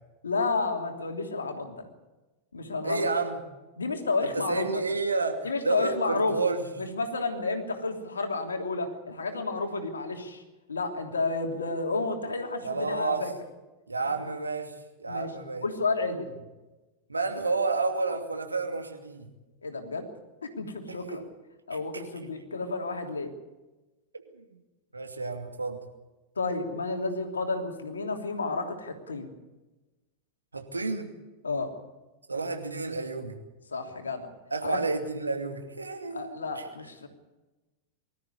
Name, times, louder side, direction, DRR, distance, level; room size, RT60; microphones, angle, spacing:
voice 1, 0.2-1.8 2.5-3.1 3.8-4.8 5.4-6.5 6.8-10.4 10.7-13.3 15.1-15.3 15.6-16.3 19.6-20.1 20.6-21.2 21.7-23.3 26.4-29.3 31.4-31.7 33.7-34.3 34.6-34.8 36.1-37.1, left 3 dB, 75° left, 4 dB, 3.1 m, -31 dB
voice 2, 2.8-3.4 4.2-6.7 12.6-13.3 13.9-15.7 17.1-19.3 20.9-21.2 24.3-24.5 24.9-25.8 30.5-31.1 32.3-33.4 34.5-36.6, right 3 dB, 80° right, 5 dB, 2.6 m, -30 dB
23.0 x 13.5 x 9.5 m, 1.1 s
figure-of-eight pair, 90°, 0 cm